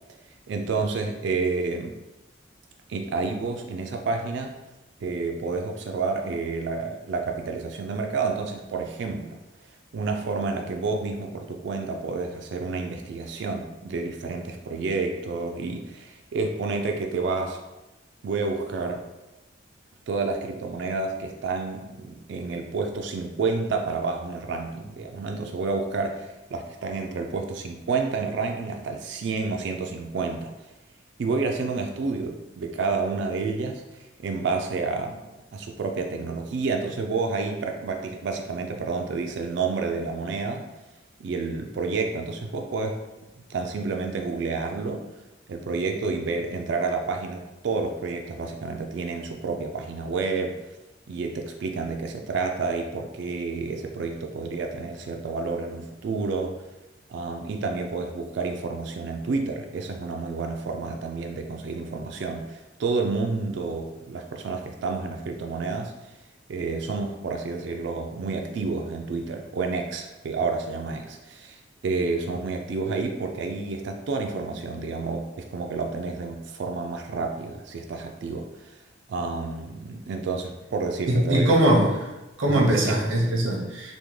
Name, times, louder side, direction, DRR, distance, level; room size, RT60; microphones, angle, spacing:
voice 1, 0.3-2.0 2.9-4.6 5.0-9.4 9.9-17.6 18.2-19.0 20.1-30.5 31.2-40.7 41.2-43.0 43.5-45.1 45.5-50.6 51.1-56.6 57.1-66.1 66.5-78.8 79.1-81.6 82.5-83.0, right 4 dB, 60° right, 3 dB, 0.3 m, -29 dB
voice 2, 81.1-82.0 82.4-84.0, right 1 dB, 85° right, -1 dB, 0.7 m, -21 dB
3.5 x 2.1 x 3.1 m, 1.0 s
head